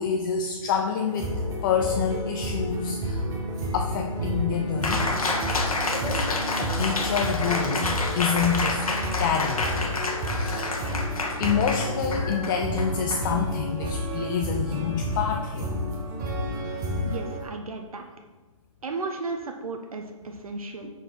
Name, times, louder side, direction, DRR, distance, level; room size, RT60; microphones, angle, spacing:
voice 1, 0.0-1.3 1.6-3.2 3.7-5.1 6.6-9.7 10.3-10.9 11.4-15.7, left 7 dB, 35° left, 3 dB, 0.6 m, -27 dB
sound 1, 0.9-17.4, equal, 20° right, 1.2 m, -30 dB
Cheering, 4.8-13.8, left 3 dB, 85° left, 1.3 m, -29 dB
voice 2, 17.0-18.1 18.8-20.9, right 3 dB, 85° right, 4 dB, 0.8 m, -34 dB
8.9 x 4.6 x 4.4 m, 1.3 s
hypercardioid pair, 140°, 18 cm